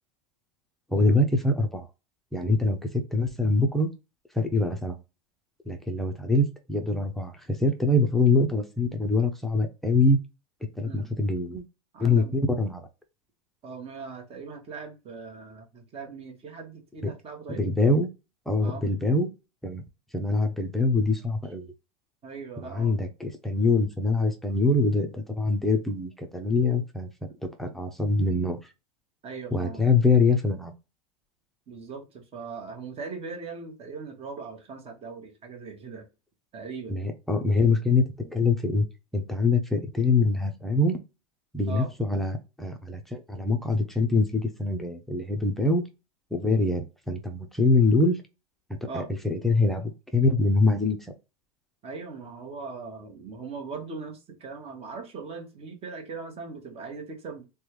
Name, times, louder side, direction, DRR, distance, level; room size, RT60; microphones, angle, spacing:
voice 1, 0.9-1.9 2.3-3.9 4.3-5.0 5.7-7.3 7.6-10.2 10.8-11.6 12.0-12.9 17.0-17.1 17.6-18.1 18.5-19.3 19.6-19.8 20.1-21.7 22.7-27.1 27.6-28.6 29.5-30.7 36.9-38.8 39.1-41.0 41.5-45.8 46.3-48.2 48.9-51.0, left 3 dB, ahead, 0.6 m, -24 dB
voice 2, 11.9-12.4 13.6-17.7 18.6-18.9 22.2-23.0 29.2-29.9 31.7-36.1 36.5-37.0 41.7-41.9 48.9-49.1 51.8-57.4, right 4 dB, 30° right, 1.2 m, -39 dB
3.4 x 2.2 x 3.0 m
supercardioid pair, 115°, 19 cm